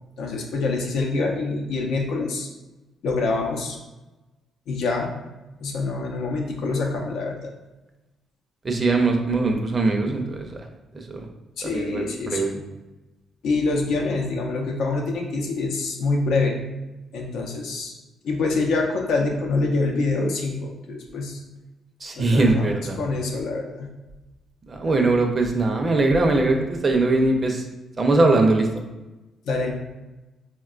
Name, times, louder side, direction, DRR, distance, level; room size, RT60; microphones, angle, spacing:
voice 1, 0.2-2.5 3.0-3.8 4.7-5.1 5.6-7.5 11.6-12.6 13.4-16.6 17.1-17.9 18.2-21.4 22.2-22.7 23.0-23.9 29.4-29.7, left 3 dB, 80° left, 1 dB, 0.5 m, -25 dB
voice 2, 8.6-10.6 11.1-11.2 11.6-12.5 22.0-23.0 24.7-27.6 28.0-28.7, right 2 dB, 35° right, 3 dB, 0.5 m, -21 dB
3.6 x 2.2 x 2.4 m, 1.1 s
cardioid pair, 90°, 0 cm